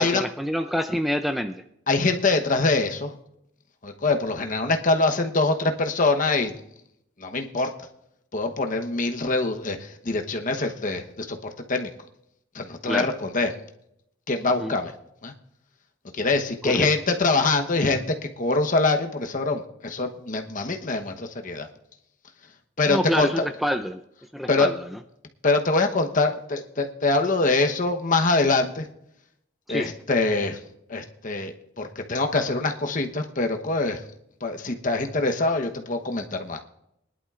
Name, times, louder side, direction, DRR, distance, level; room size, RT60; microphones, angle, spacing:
voice 1, 0.0-1.6 12.8-13.1 14.6-14.7 16.7-16.9 22.9-24.0 24.3-24.8 29.7-29.9, equal, ahead, 8 dB, 0.4 m, -27 dB
voice 2, 1.9-3.2 3.8-6.5 7.2-7.7 8.3-11.9 12.5-13.5 14.3-14.9 15.2-15.3 16.1-21.7 22.8-23.5 24.5-24.7 25.4-28.9 29.7-30.6 30.9-34.0 34.4-36.6, left 3 dB, 45° left, 5 dB, 1.0 m, -24 dB
21.0 x 11.0 x 2.5 m, 0.76 s
head